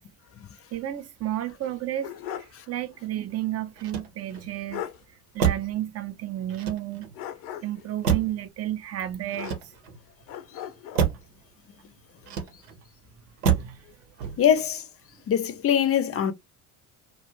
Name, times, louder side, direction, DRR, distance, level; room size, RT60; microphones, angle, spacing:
voice 1, 0.7-4.9 5.3-7.1 7.6-9.5 11.1-11.2 13.4-13.8, right 13 dB, 30° right, 0.6 m, -32 dB
sound 1, 1.6-2.6 3.0-3.1 4.3-4.4 4.7-5.0 7.1-7.9 9.3-9.9 10.3-11.1, left 11 dB, 75° left, 0.7 m, -38 dB
Motor vehicle (road), 3.7-4.5 5.4-5.8 6.5-7.2 8.0-8.5 9.3-10.0 10.9-11.3 12.2-12.8 13.4-13.8 14.2-14.6, right 7 dB, 75° right, 0.9 m, -28 dB
voice 2, 14.4-14.8 15.3-16.3, left 9 dB, 30° left, 0.6 m, -22 dB
2.5 x 2.2 x 3.0 m
hypercardioid pair, 65°, 47 cm